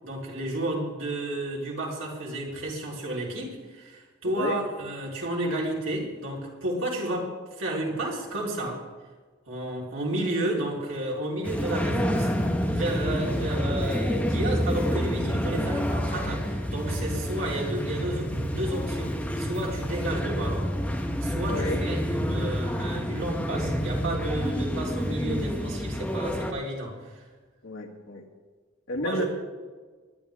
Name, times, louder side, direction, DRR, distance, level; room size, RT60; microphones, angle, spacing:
voice 1, 0.0-8.8 9.5-12.3 12.7-20.8 21.2-27.2 29.0-29.2, right 1 dB, 90° right, -3 dB, 3.9 m, -32 dB
sound 1, 11.4-26.5, equal, 5° left, 1.2 m, -28 dB
voice 2, 21.5-21.8 27.6-28.2 28.9-29.2, left 1 dB, 85° left, 1 dB, 2.1 m, -31 dB
19.5 x 11.0 x 3.6 m, 1.4 s
head